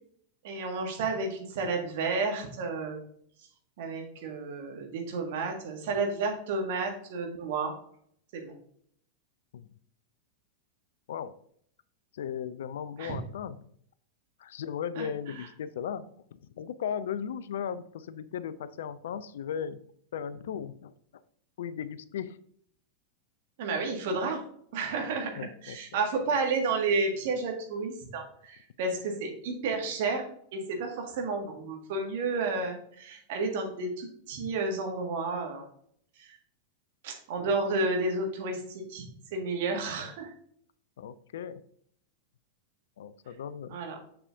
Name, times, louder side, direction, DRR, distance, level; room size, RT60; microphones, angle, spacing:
voice 1, 0.4-3.0 3.8-7.7 8.3-8.5 13.0-13.2 14.9-15.1 23.6-24.4 24.7-30.3 30.5-35.7 36.2-36.3 37.0-39.0 39.3-40.3 43.7-44.0, right 3 dB, 50° right, 3 dB, 1.7 m, -31 dB
voice 2, 12.1-13.6 14.4-19.8 20.1-20.9 21.6-22.4 25.4-26.0 37.4-37.6 41.0-41.6 43.0-43.8, left 8 dB, 60° left, 16 dB, 0.4 m, -37 dB
6.9 x 6.8 x 2.6 m, 0.64 s
figure-of-eight pair, 90°, 0 cm